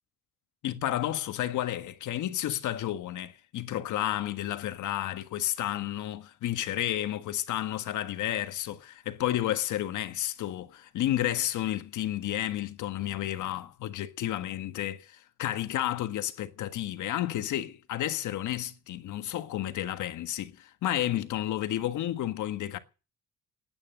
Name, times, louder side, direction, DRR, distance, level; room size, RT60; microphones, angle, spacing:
voice 1, 0.6-22.8, left 13 dB, 80° left, 1.6 m, -31 dB
18.5 x 9.8 x 6.6 m
cardioid pair, 90°, 30 cm